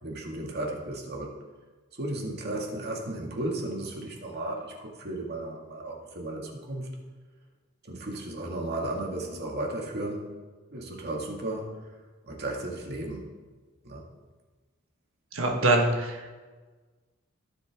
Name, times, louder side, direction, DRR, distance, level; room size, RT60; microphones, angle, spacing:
voice 1, 0.0-1.3 1.9-6.9 7.8-10.3 10.7-11.8 12.2-13.3 13.8-14.0, right 1 dB, 55° right, 0 dB, 2.1 m, -34 dB
voice 2, 15.3-16.3, right 2 dB, 80° right, 2 dB, 1.3 m, -24 dB
16.5 x 7.6 x 3.6 m, 1.3 s
head